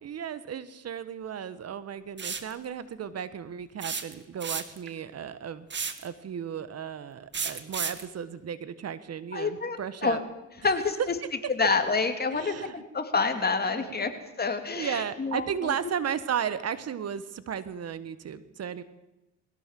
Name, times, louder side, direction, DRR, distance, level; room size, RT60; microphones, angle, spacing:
voice 1, 0.0-5.7 6.0-10.2 10.6-10.7 12.3-12.8 13.7-14.2 14.8-18.8, right 8 dB, 55° right, 14 dB, 1.3 m, -35 dB
sound 1, 2.2-2.5 3.8-4.9 5.7-6.1 7.3-8.1, right 5 dB, 40° right, 1.9 m, -32 dB
voice 2, 9.3-9.8 10.0-10.2 10.6-11.0 11.6-14.1 14.4-15.7, left 4 dB, 30° left, 7 dB, 2.9 m, -27 dB
21.5 x 16.5 x 7.6 m, 1.0 s
cardioid pair, 90°, 30 cm